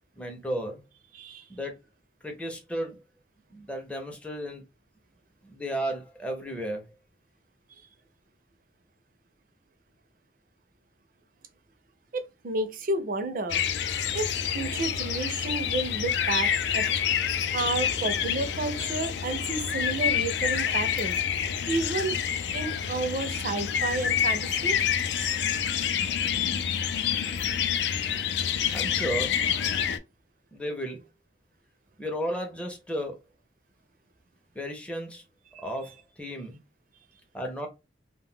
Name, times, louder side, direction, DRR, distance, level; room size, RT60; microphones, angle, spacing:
voice 1, 0.2-0.8 1.5-1.7 2.2-3.0 3.5-4.6 5.4-6.9 28.7-29.4 30.5-31.0 32.0-33.2 34.5-35.2 35.6-36.6 37.3-37.7, equal, 5° left, 0.5 m, -34 dB
voice 2, 1.1-1.5 12.1-13.6 14.1-17.2 17.5-21.2 21.7-22.2 22.5-24.8 35.5-35.6, right 2 dB, 50° right, 0.4 m, -31 dB
sound 1, 13.5-30.0, left 8 dB, 75° left, 0.3 m, -28 dB
2.2 x 2.1 x 3.6 m
head